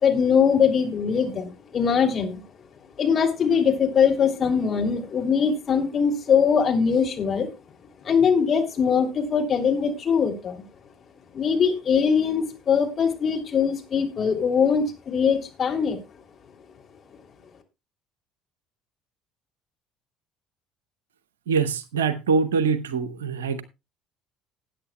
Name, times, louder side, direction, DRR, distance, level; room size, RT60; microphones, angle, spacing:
voice 1, 0.0-2.4 3.0-7.5 8.0-10.6 11.3-16.0, left 6 dB, 40° left, 2.9 m, -22 dB
voice 2, 21.5-23.6, right 5 dB, 75° right, 0.7 m, -24 dB
20.0 x 8.8 x 2.3 m
figure-of-eight pair, 55°, 0 cm